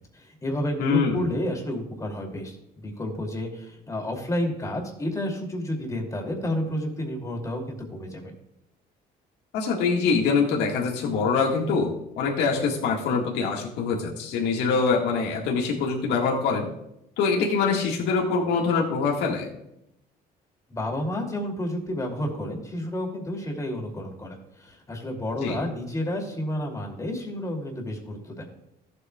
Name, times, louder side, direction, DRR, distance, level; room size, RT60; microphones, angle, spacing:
voice 1, 0.1-2.6 2.8-8.3 20.7-28.5, left 1 dB, 20° left, 1 dB, 2.7 m, -30 dB
voice 2, 0.8-1.2 9.5-16.7 17.2-19.5 25.4-25.6, left 5 dB, 85° left, -1 dB, 1.8 m, -24 dB
14.5 x 7.9 x 2.4 m, 0.81 s
cardioid pair, 110°, 17 cm